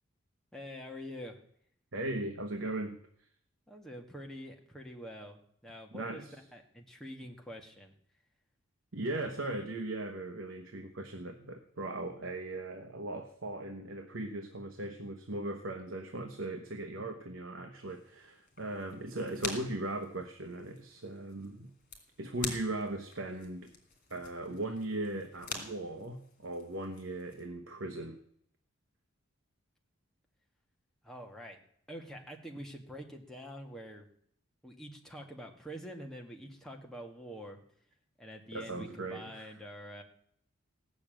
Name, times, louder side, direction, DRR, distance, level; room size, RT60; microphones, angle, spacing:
voice 1, 0.5-1.4 3.7-6.3 6.5-7.9 31.0-31.6 31.9-34.1 34.6-37.6 38.2-40.0, equal, ahead, 1 dB, 1.7 m, -46 dB
voice 2, 1.9-3.0 5.9-6.4 8.9-21.7 22.2-23.7 24.1-28.2 38.5-39.5, right 2 dB, 70° right, 5 dB, 1.2 m, -38 dB
sound 1, 17.9-27.5, left 4 dB, 40° left, 3.3 m, -46 dB
16.5 x 7.0 x 9.0 m, 0.67 s
head